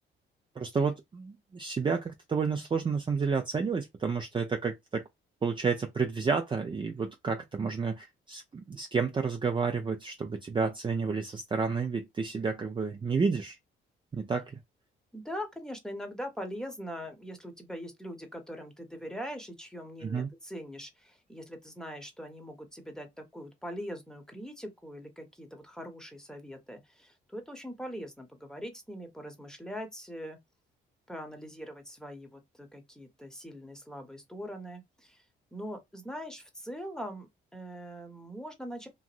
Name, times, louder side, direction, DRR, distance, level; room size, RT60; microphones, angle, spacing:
voice 1, 0.6-5.0 5.4-13.6 14.1-14.5 20.0-20.3, right 5 dB, 25° right, 0.5 m, -30 dB
voice 2, 15.1-30.4 31.1-35.2 35.5-38.9, equal, 5° left, 1.0 m, -42 dB
3.0 x 2.5 x 2.5 m
cardioid pair, 90°, 20 cm